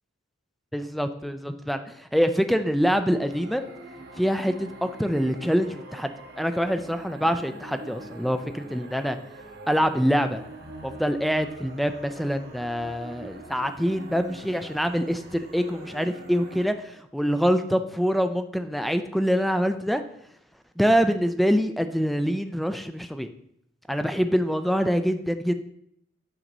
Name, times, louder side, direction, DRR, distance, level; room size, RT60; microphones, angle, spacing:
voice 1, 0.7-3.6 4.2-9.2 9.7-10.4 10.8-20.0 20.8-23.3 23.9-25.5, equal, ahead, 8 dB, 0.4 m, -25 dB
sound 1, 3.0-16.6, right 1 dB, 50° right, 1.1 m, -44 dB
9.0 x 4.0 x 6.1 m, 0.73 s
head